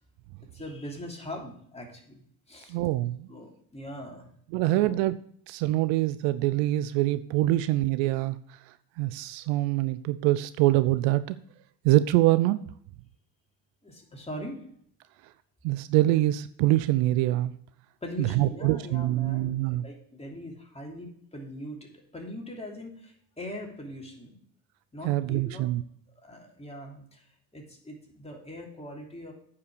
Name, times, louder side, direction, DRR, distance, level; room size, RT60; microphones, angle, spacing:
voice 1, 0.5-2.2 2.5-2.8 3.3-4.3 4.8-5.0 13.8-14.6 18.0-24.4 24.9-25.6 26.2-29.3, left 1 dB, 15° left, 0 dB, 3.1 m, -41 dB
voice 2, 2.7-3.3 4.5-5.2 5.5-8.4 9.0-11.4 11.8-12.6 15.6-17.5 18.2-19.8 25.0-25.8, right 16 dB, 70° right, 15 dB, 0.6 m, -24 dB
9.1 x 5.8 x 6.7 m, 0.64 s
hypercardioid pair, 65°, 47 cm